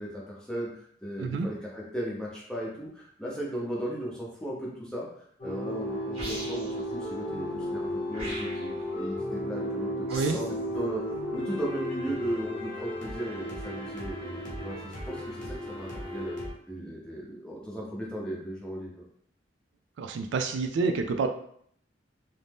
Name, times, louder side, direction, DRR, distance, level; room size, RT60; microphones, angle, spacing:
voice 1, 0.0-5.1 5.4-16.4 16.7-19.0, right 1 dB, 5° left, -5 dB, 0.7 m, -36 dB
sound 1, 5.4-16.5, equal, 45° left, 0.9 m, -34 dB
sound 2, 6.1-6.8 8.1-8.8 10.1-10.6, right 1 dB, 35° right, 0.8 m, -39 dB
voice 2, 20.0-21.3, right 4 dB, 80° right, 6 dB, 0.3 m, -28 dB
2.6 x 2.1 x 3.3 m, 0.63 s
head